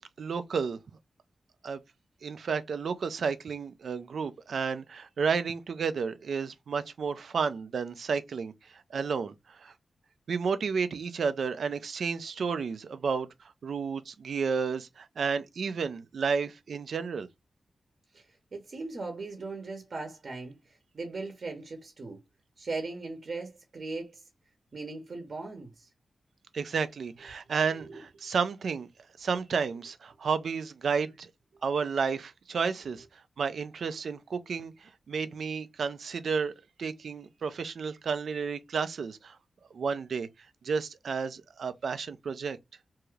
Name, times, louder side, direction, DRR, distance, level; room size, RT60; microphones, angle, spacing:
voice 1, 0.2-0.8 1.6-1.8 2.2-8.5 8.9-9.7 10.3-13.3 13.6-17.3 26.5-28.9 29.2-31.3 31.6-33.0 33.4-36.5 36.8-39.4 39.7-40.3 40.6-42.6, right 5 dB, 75° right, 0.4 m, -31 dB
voice 2, 18.5-22.2 22.6-24.2 24.7-25.9 27.9-28.0, right 3 dB, 60° right, 0.8 m, -38 dB
2.7 x 2.4 x 3.1 m
cardioid pair, 60°, 0 cm